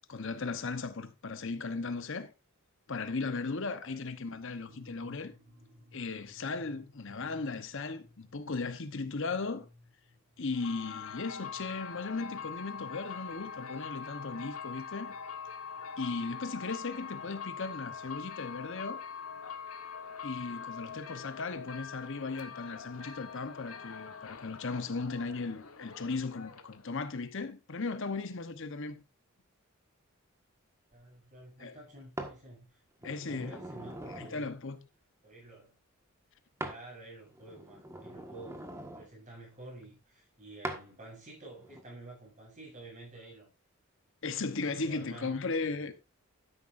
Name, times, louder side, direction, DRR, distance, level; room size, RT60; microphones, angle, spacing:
voice 1, 0.1-2.3 2.9-5.3 5.9-9.7 10.4-15.1 16.0-19.0 20.2-29.0 31.6-31.7 33.0-33.6 34.1-34.8 44.2-45.9, left 4 dB, 60° left, 1.0 m, -37 dB
sound 1, 4.7-17.7, left 1 dB, 65° right, 5.1 m, -61 dB
sound 2, 10.5-27.0, left 6 dB, 80° left, 1.4 m, -43 dB
voice 2, 30.9-34.5 35.2-35.7 36.6-38.7 39.0-43.5 44.3-46.0, right 2 dB, 35° right, 7.6 m, -51 dB
sound 3, 32.2-32.4 33.0-34.4 36.6-36.8 37.3-39.1 40.6-40.8 41.6-41.8, right 1 dB, 15° right, 1.5 m, -42 dB
12.5 x 10.5 x 2.6 m
head